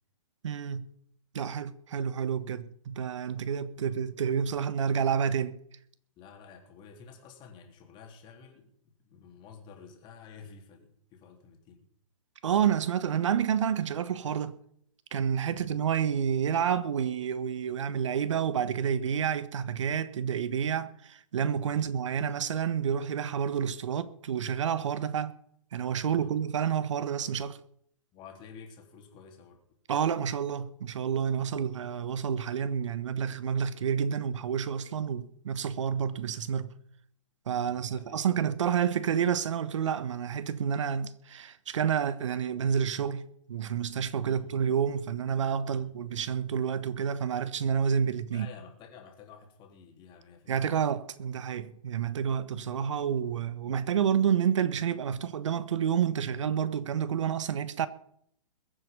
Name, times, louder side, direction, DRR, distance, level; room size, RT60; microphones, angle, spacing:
voice 1, 0.4-0.9 1.3-5.6 12.4-14.6 15.1-25.4 25.7-27.6 29.9-36.7 37.5-48.5 50.5-57.9, right 8 dB, 65° right, 1.3 m, -29 dB
voice 2, 3.7-4.1 6.2-8.6 9.0-11.8 15.5-15.8 21.7-22.1 26.0-26.3 28.1-29.8 37.6-38.4 44.3-44.4 45.7-45.9 48.3-50.9, left 6 dB, 25° left, 3.7 m, -51 dB
22.0 x 7.6 x 5.4 m
hypercardioid pair, 130°, 17 cm